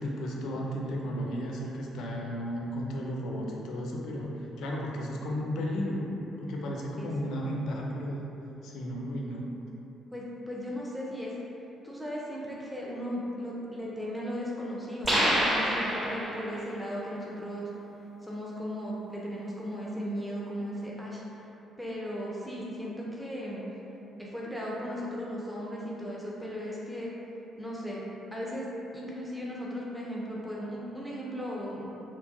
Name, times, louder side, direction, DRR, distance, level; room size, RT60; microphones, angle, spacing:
voice 1, 0.0-6.0 6.4-8.2 8.6-9.5, equal, 60° left, -2 dB, 0.3 m, -34 dB
voice 2, 10.1-11.3 11.8-17.7 18.2-21.2 21.8-23.6 24.2-27.1 27.6-28.0 28.3-28.7 28.9-31.8, equal, ahead, -6 dB, 0.5 m, -36 dB
sound 1, 15.0-16.6, equal, 20° right, 0.8 m, -27 dB
2.8 x 2.2 x 2.5 m, 3.0 s
figure-of-eight pair, 45°, 0 cm